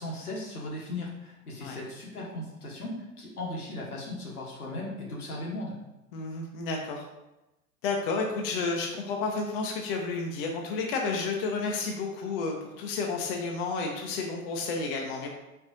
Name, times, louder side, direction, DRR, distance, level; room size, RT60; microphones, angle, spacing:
voice 1, 0.0-5.8, left 1 dB, 80° left, -3 dB, 1.1 m, -37 dB
voice 2, 6.1-7.1 7.8-15.3, left 4 dB, 40° left, 1 dB, 0.5 m, -31 dB
4.2 x 2.5 x 2.6 m, 0.96 s
figure-of-eight pair, 95°, 45 cm